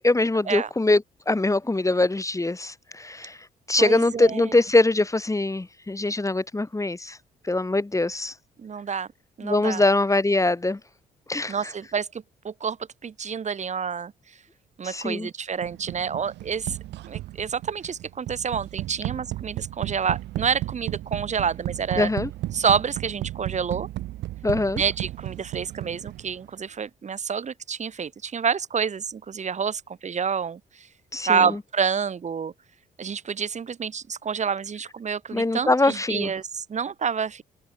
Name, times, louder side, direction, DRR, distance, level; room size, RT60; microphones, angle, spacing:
voice 1, 0.0-3.4 3.7-7.2 7.4-8.3 9.4-10.8 11.3-11.6 14.8-15.3 22.0-22.3 24.4-24.8 31.1-31.6 35.3-36.3, left 2 dB, 15° left, 1.8 m, -23 dB
voice 2, 3.8-4.5 8.6-9.1 9.4-9.8 11.5-12.8 13.0-14.1 14.8-16.8 17.1-22.1 22.5-23.9 24.8-30.9 31.3-32.5 33.0-37.4, right 6 dB, 35° right, 1.1 m, -28 dB
sound 1, 15.6-26.5, right 16 dB, 60° right, 0.9 m, -34 dB
figure-of-eight pair, 45°, 20 cm